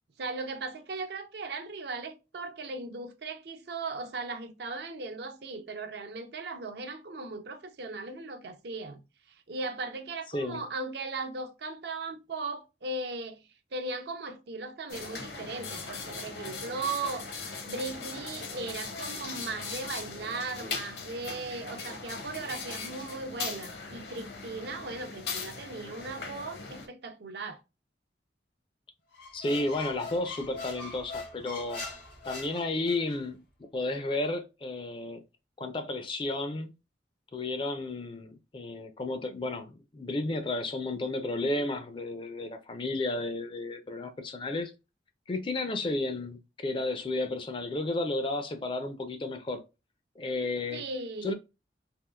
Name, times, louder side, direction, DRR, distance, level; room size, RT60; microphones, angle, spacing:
voice 1, 0.2-9.0 9.5-13.4 13.7-17.3 17.6-27.6 50.7-51.3, right 3 dB, 65° right, 0.5 m, -37 dB
sound 1, 14.9-26.9, left 4 dB, 65° left, 0.7 m, -39 dB
Squeak, 29.1-33.2, left 3 dB, 90° left, 1.3 m, -42 dB
voice 2, 29.3-31.8 32.2-33.4 33.7-35.2 35.6-36.7 37.3-44.7 45.3-49.6 50.2-50.8 51.2-51.3, left 2 dB, 30° left, 0.4 m, -32 dB
3.5 x 2.4 x 2.2 m
head